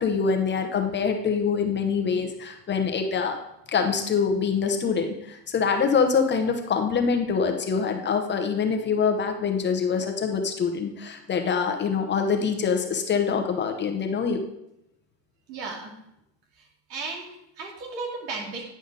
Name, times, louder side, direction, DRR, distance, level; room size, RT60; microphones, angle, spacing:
voice 1, 0.0-3.4 3.7-14.4, left 5 dB, 20° left, 4 dB, 0.8 m, -25 dB
voice 2, 15.5-15.9 16.9-18.7, right 3 dB, 90° right, -1 dB, 2.5 m, -35 dB
9.8 x 5.1 x 3.9 m, 0.81 s
supercardioid pair, 125°, 49 cm